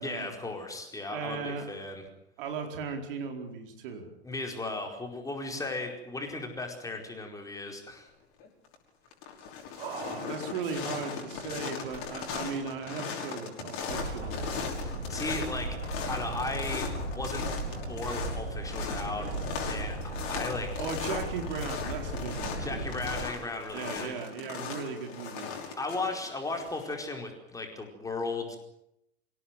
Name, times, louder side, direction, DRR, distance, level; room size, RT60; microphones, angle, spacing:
voice 1, 0.0-2.0 4.2-8.1 14.8-15.8 16.1-17.5 17.9-19.3 19.7-20.9 22.6-24.1 25.8-28.6, left 3 dB, 10° left, 3 dB, 4.7 m, -36 dB
voice 2, 1.1-1.7 2.4-4.1 9.7-14.7 20.8-22.9 23.7-25.5, right 5 dB, 50° right, 4 dB, 4.5 m, -37 dB
sound 1, 8.4-8.7 9.1-26.9, left 6 dB, 40° left, 5.7 m, -38 dB
sound 2, 13.9-23.3, right 1 dB, 85° right, 4.3 m, -36 dB
26.5 x 17.5 x 9.3 m, 0.81 s
figure-of-eight pair, 90°, 33 cm